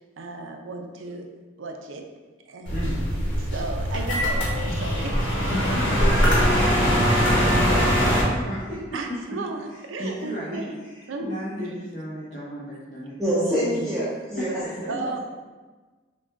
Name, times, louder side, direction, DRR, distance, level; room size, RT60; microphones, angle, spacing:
voice 1, 0.2-1.3 1.6-2.0 2.5-2.9 3.3-5.7 8.9-10.7 11.1-11.6 12.7-13.0 14.9-15.2, right 3 dB, 85° right, 3 dB, 0.5 m, -35 dB
sound 1, 2.7-8.2, equal, 70° left, 1.3 m, -22 dB
voice 2, 2.7-3.1 5.5-6.8 7.2-8.8 9.3-9.4 10.0-13.1 13.6-13.9 14.4-14.9, equal, 50° left, -9 dB, 1.0 m, -33 dB
voice 3, 13.2-15.0, equal, ahead, -12 dB, 1.1 m, -26 dB
5.9 x 2.3 x 3.6 m, 1.3 s
head